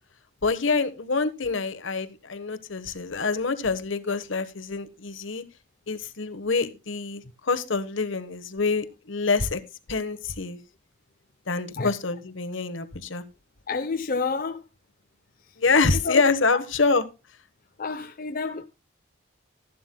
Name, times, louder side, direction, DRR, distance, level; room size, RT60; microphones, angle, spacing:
voice 1, 0.4-5.4 5.9-9.6 9.9-10.6 11.5-13.2 15.6-17.0, left 4 dB, 70° left, 1.2 m, -26 dB
voice 2, 13.7-14.7 15.5-15.6 16.0-16.2 16.5-16.6 17.8-18.7, left 4 dB, 45° left, 0.7 m, -29 dB
15.0 x 11.5 x 2.2 m
head